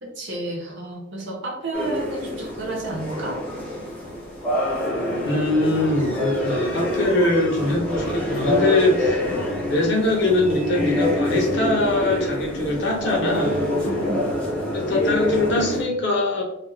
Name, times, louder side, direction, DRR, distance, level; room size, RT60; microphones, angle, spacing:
voice 1, 0.0-3.4 13.8-14.3, right 2 dB, 60° right, -1 dB, 0.7 m, -31 dB
sound 1, 1.7-15.8, left 1 dB, 5° left, 0.6 m, -26 dB
voice 2, 5.2-9.2 9.7-13.6 14.7-16.4, left 2 dB, 55° left, 0 dB, 0.6 m, -22 dB
2.4 x 2.3 x 3.1 m, 0.83 s
head